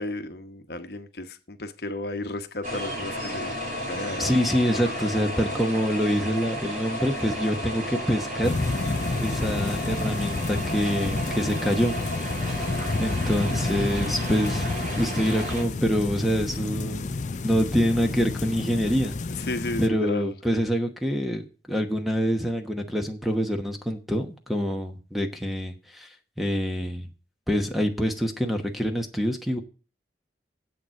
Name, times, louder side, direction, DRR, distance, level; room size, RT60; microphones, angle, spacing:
voice 1, 0.0-3.5 3.8-4.3 12.7-13.4 19.4-20.3, left 2 dB, 60° left, 1.0 m, -34 dB
sound 1, 2.6-15.6, equal, 45° right, 3.3 m, -33 dB
voice 2, 4.2-8.5 9.2-12.0 12.4-12.6 13.0-17.1 17.4-19.1 19.8-26.1 26.4-27.1 27.5-29.6, equal, ahead, 1.0 m, -26 dB
sound 2, 8.4-19.9, left 3 dB, 40° left, 0.5 m, -30 dB
7.9 x 6.9 x 7.6 m
head